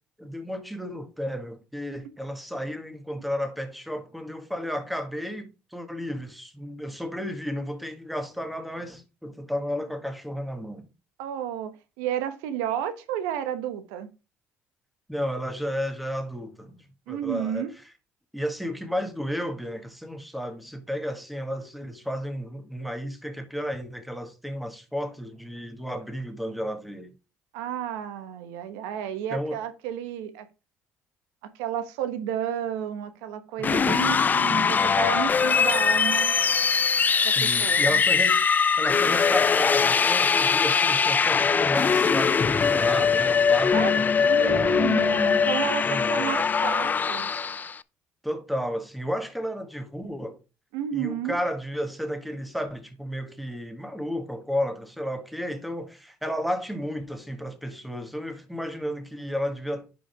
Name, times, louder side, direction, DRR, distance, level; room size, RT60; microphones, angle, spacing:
voice 1, 0.2-10.9 15.1-17.7 18.3-27.1 29.3-29.6 37.4-38.4 38.8-44.8 45.9-46.3 48.2-50.4 50.9-59.9, equal, ahead, 1.8 m, -32 dB
voice 2, 11.2-14.1 17.1-17.7 27.5-30.5 31.4-36.3 37.2-38.0 43.7-47.3 50.7-51.4, right 9 dB, 85° right, 1.0 m, -32 dB
sound 1, 33.6-47.8, left 6 dB, 30° left, 0.5 m, -22 dB
10.5 x 5.1 x 3.5 m
supercardioid pair, 75°, 6 cm